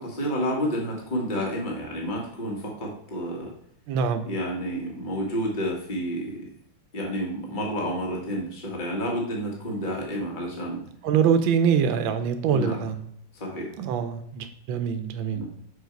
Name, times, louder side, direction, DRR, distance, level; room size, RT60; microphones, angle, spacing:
voice 1, 0.0-3.5 4.2-6.5 6.9-10.9 12.5-12.8 13.4-13.7 15.3-15.5, equal, 25° left, -2 dB, 1.7 m, -30 dB
voice 2, 3.9-4.3 11.0-13.1 13.8-15.5, right 7 dB, 85° right, 9 dB, 1.4 m, -24 dB
6.5 x 4.8 x 4.5 m, 0.70 s
omnidirectional pair, 2.1 m